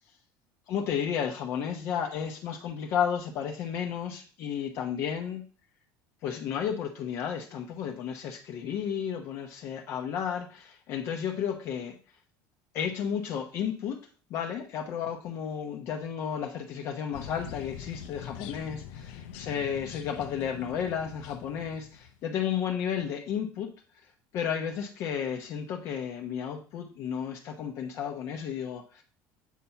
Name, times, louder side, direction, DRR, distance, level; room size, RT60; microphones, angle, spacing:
voice 1, 0.7-5.4 6.2-12.0 12.7-14.0 14.3-23.7 24.3-29.0, left 8 dB, 40° left, 3 dB, 1.0 m, -32 dB
sound 1, 17.1-22.2, left 9 dB, 85° left, 0.8 m, -44 dB
8.3 x 4.2 x 5.7 m, 0.39 s
cardioid pair, 175°, 7 cm